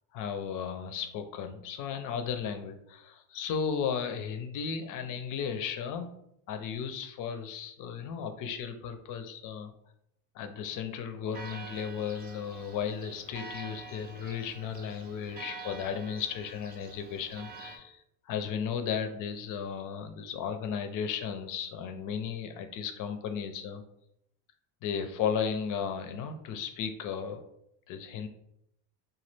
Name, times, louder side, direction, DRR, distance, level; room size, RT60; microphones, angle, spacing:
voice 1, 0.1-6.1 6.5-9.7 10.3-18.0 18.3-23.8 24.8-27.5 27.9-28.3, left 7 dB, 45° left, 8 dB, 0.4 m, -35 dB
Church bell, 11.3-17.8, right 3 dB, 25° right, 0.4 m, -46 dB
2.9 x 2.3 x 3.2 m, 0.76 s
cardioid pair, 130°, 45 cm